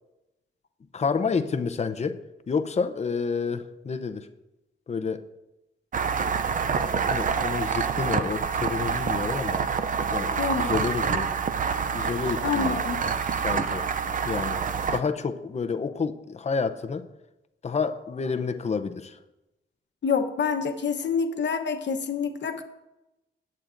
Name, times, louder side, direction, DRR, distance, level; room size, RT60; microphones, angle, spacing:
voice 1, 0.9-2.2 2.5-4.3 4.9-5.2 6.7-9.7 10.1-11.3 11.9-12.8 13.3-13.9 14.2-14.6 14.9-17.1 17.6-19.2, left 5 dB, 35° left, 9 dB, 0.6 m, -29 dB
sound 1, 5.9-15.0, right 6 dB, 40° right, 0.4 m, -27 dB
voice 2, 10.4-10.7 12.4-13.0 20.0-22.6, left 6 dB, 60° left, 6 dB, 1.0 m, -27 dB
17.0 x 8.5 x 2.6 m, 0.95 s
wide cardioid pair, 165°, 21 cm